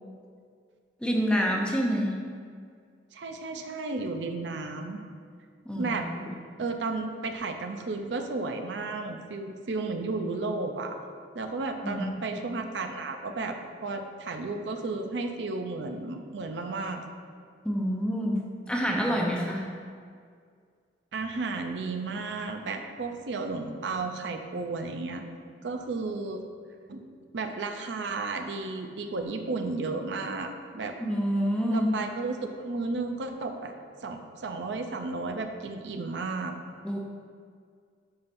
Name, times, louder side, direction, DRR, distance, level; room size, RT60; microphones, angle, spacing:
voice 1, 1.0-2.2 5.7-6.4 11.8-12.0 17.6-19.7 31.0-31.9 36.8-37.0, equal, 5° left, -1 dB, 0.7 m, -27 dB
voice 2, 3.1-5.0 5.7-6.1 6.6-11.0 11.3-17.0 21.1-25.2 25.6-26.4 26.9-27.0 27.3-30.9 31.7-33.8 34.0-36.5, right 3 dB, 70° right, 5 dB, 0.5 m, -33 dB
9.6 x 5.6 x 2.6 m, 2.1 s
head